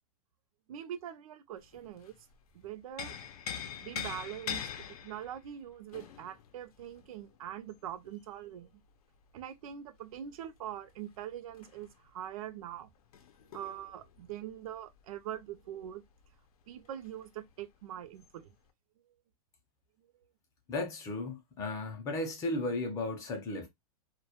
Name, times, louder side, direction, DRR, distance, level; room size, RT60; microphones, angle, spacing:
voice 1, 0.7-2.1 2.5-3.2 3.8-8.8 9.3-12.9 13.5-16.0 16.7-18.5, right 10 dB, 70° right, 0.5 m, -43 dB
sound 1, 1.6-2.4 2.7-8.2 10.1-15.9 16.2-16.3 16.7-17.4 18.2-18.3, left 8 dB, 75° left, 0.5 m, -44 dB
voice 2, 20.7-23.7, left 2 dB, 15° left, 0.5 m, -35 dB
2.2 x 2.1 x 2.8 m
supercardioid pair, 160°, 19 cm